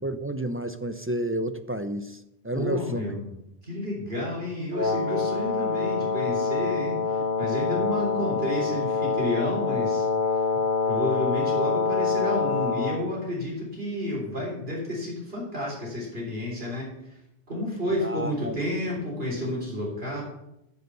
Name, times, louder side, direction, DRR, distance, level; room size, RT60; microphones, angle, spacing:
voice 1, 0.0-2.2 2.4-3.0 18.0-18.6, right 1 dB, 20° right, 10 dB, 0.3 m, -30 dB
voice 2, 2.5-3.2 3.6-10.1 10.8-16.9 17.5-20.2, left 1 dB, 75° right, -3 dB, 3.8 m, -31 dB
Wind instrument woodwind instrument, 4.7-13.0, left 4 dB, 50° left, 1.2 m, -26 dB
10.5 x 5.4 x 7.8 m, 0.84 s
omnidirectional pair, 1.0 m